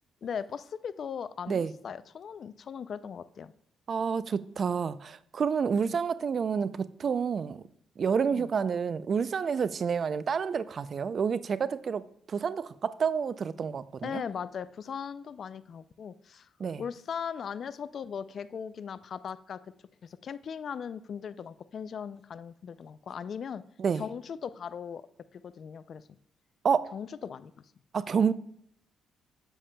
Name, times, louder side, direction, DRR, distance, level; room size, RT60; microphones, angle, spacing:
voice 1, 0.2-3.5 5.8-6.0 8.3-8.5 14.0-16.5 16.8-19.7 20.0-23.6 23.9-25.1 25.3-26.2 26.9-27.7, left 7 dB, 55° left, 0.3 m, -39 dB
voice 2, 3.9-7.6 8.0-12.0 12.3-14.2 16.6-16.8 23.8-24.0 26.6-26.9 27.9-28.3, right 6 dB, 50° right, 0.3 m, -29 dB
9.9 x 7.1 x 2.2 m
cardioid pair, 90°, 0 cm